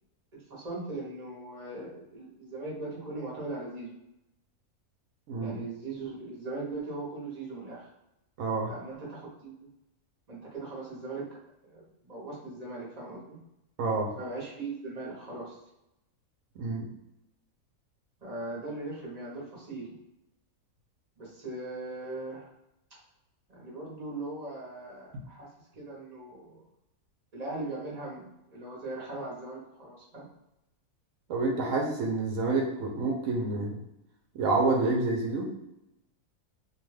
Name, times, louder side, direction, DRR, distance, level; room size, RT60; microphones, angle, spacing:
voice 1, 0.5-4.0 5.4-7.9 8.7-9.7 10.3-11.3 11.6-13.4 14.1-15.6 18.2-20.0 21.2-22.5 23.5-25.5 25.8-26.6 27.3-30.3, right 2 dB, 40° right, -5 dB, 0.6 m, -39 dB
voice 2, 8.4-8.7 13.8-14.1 16.6-16.9 31.3-33.8 34.3-35.5, right 3 dB, 70° right, 0 dB, 0.8 m, -28 dB
2.7 x 2.2 x 3.1 m, 0.88 s
omnidirectional pair, 1.6 m